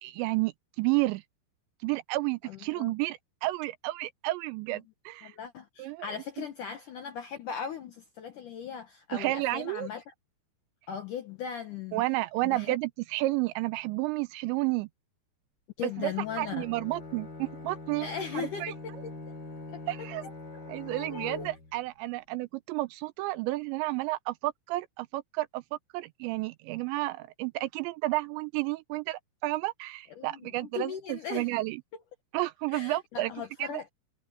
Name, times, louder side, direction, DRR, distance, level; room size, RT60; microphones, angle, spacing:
voice 1, 0.0-1.2 1.8-5.4 5.8-6.4 9.1-9.9 11.9-14.9 15.8-16.1 16.4-18.1 18.3-18.7 19.9-20.2 20.7-25.6 25.9-31.8 32.3-33.3 33.6-33.8, right 19 dB, 85° right, 3.0 m, -31 dB
voice 2, 2.5-2.9 5.2-10.1 10.9-12.0 12.4-12.7 15.8-16.7 18.0-18.9 19.7-19.8 20.9-21.5 30.2-31.5 32.7-33.9, left 7 dB, 65° left, 2.2 m, -38 dB
Bowed string instrument, 15.9-21.9, left 2 dB, 30° left, 2.6 m, -43 dB
omnidirectional pair, 5.1 m